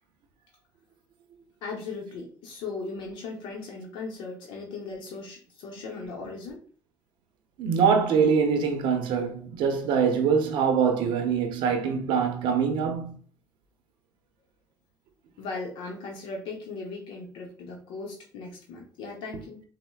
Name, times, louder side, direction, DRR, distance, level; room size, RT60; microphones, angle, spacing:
voice 1, 1.6-6.6 15.4-19.6, left 3 dB, 75° left, 0.7 m, -38 dB
voice 2, 7.6-13.2, right 6 dB, 75° right, 0.6 m, -24 dB
4.2 x 2.0 x 2.2 m
supercardioid pair, 90°, 8 cm